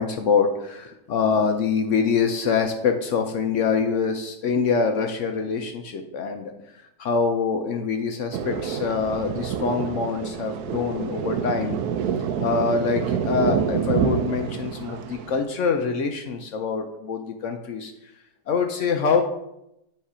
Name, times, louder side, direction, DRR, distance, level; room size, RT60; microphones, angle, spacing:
voice 1, 0.0-6.5 7.0-11.8 12.4-17.9 18.5-19.2, left 5 dB, 65° left, 5 dB, 0.8 m, -24 dB
Thunder, 8.3-15.4, right 7 dB, 75° right, 1.0 m, -27 dB
9.5 x 3.2 x 4.9 m, 0.84 s
omnidirectional pair, 1.7 m